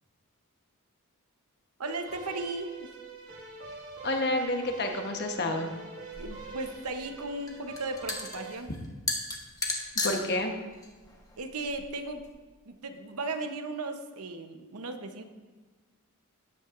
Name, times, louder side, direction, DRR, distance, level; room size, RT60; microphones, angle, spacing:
sound 1, 1.8-8.5, right 5 dB, 65° right, 2.2 m, -44 dB
voice 1, 1.8-2.9 6.2-8.7 11.4-12.3 12.6-15.2, right 2 dB, 90° right, 6 dB, 1.0 m, -36 dB
voice 2, 4.0-5.7 10.0-10.5, left 2 dB, 50° left, 4 dB, 1.2 m, -29 dB
sound 2, 6.1-12.3, left 2 dB, 15° left, 1.2 m, -36 dB
14.0 x 9.6 x 2.6 m, 1.3 s
head